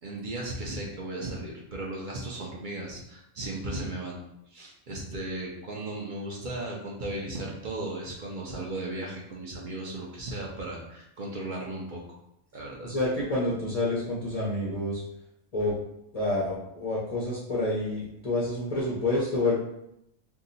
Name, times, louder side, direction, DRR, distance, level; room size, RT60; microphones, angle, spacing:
voice 1, 0.0-4.2 4.5-12.0 12.5-12.9, right 2 dB, 55° right, -3 dB, 0.5 m, -36 dB
voice 2, 12.8-15.0 15.5-15.7 16.1-19.6, left 2 dB, 45° left, -6 dB, 0.5 m, -28 dB
2.7 x 2.3 x 3.9 m, 0.79 s
omnidirectional pair, 1.5 m